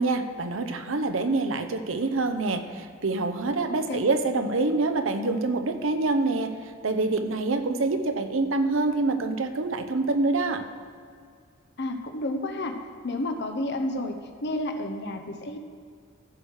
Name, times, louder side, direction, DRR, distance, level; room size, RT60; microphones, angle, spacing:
voice 1, 0.0-6.5 6.8-10.6, right 3 dB, 85° right, 8 dB, 0.8 m, -26 dB
voice 2, 3.7-4.0 11.8-12.8 13.0-15.6, left 1 dB, 60° left, 6 dB, 1.0 m, -31 dB
14.5 x 6.4 x 4.8 m, 2.2 s
head